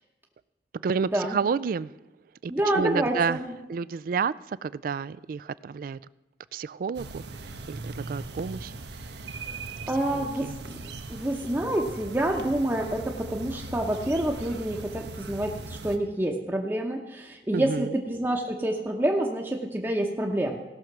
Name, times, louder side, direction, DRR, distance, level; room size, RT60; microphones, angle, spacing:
voice 1, 0.7-1.9 2.4-3.4 3.7-4.3 4.6-6.0 6.5-7.2 7.7-8.7 10.1-10.5 17.5-17.9, right 5 dB, 50° right, 18 dB, 0.3 m, -30 dB
voice 2, 2.5-3.5 9.9-10.8 11.1-20.6, right 1 dB, 15° right, -1 dB, 0.8 m, -28 dB
sound 1, 6.9-16.0, right 2 dB, 70° right, 0.9 m, -39 dB
17.0 x 6.4 x 5.9 m, 1.1 s
head